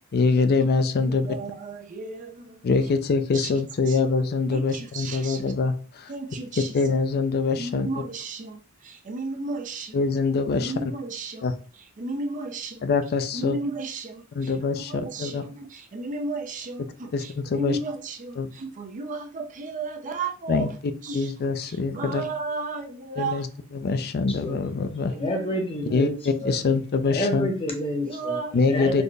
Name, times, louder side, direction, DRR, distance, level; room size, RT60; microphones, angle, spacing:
voice 1, 0.1-1.3 2.6-6.1 6.7-7.9 9.9-10.7 11.4-11.5 12.8-13.6 14.3-15.4 17.1-17.8 18.4-18.5 20.5-20.7 21.1-22.2 23.2-23.5 23.7-25.1 25.9-27.5 28.5-29.0, left 4 dB, 45° left, 0.4 m, -24 dB
voice 2, 1.0-2.6 3.3-3.5 3.9-4.0 4.5-5.5 6.1-6.8 7.6-10.0 10.5-11.5 11.8-12.9 13.3-20.7 21.0-23.7 25.1-25.2 28.0-28.9, right 3 dB, 35° right, 0.5 m, -34 dB
voice 3, 25.1-26.1 26.4-26.5 27.1-28.3 28.6-29.0, equal, 25° left, 0.9 m, -28 dB
4.1 x 2.1 x 3.2 m
head